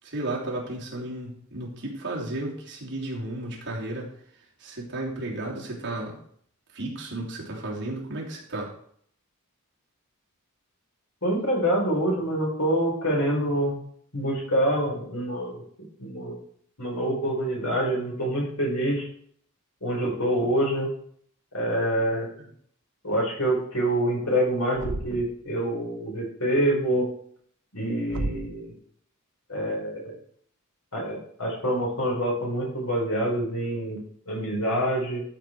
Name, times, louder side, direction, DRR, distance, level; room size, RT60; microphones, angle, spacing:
voice 1, 0.0-4.1 4.6-6.2 6.7-8.7 22.4-22.5, right 2 dB, 55° right, -3 dB, 3.2 m, -33 dB
voice 2, 11.2-13.7 14.1-15.6 16.0-16.4 16.8-19.1 19.8-20.9 21.5-22.3 23.0-27.1 27.7-28.7 29.5-30.2 30.9-35.2, right 1 dB, 70° left, -2 dB, 4.8 m, -26 dB
Thump thud, 24.7-25.4 28.1-28.6, right 2 dB, 75° right, 0.8 m, -32 dB
13.5 x 6.7 x 4.6 m, 0.63 s
head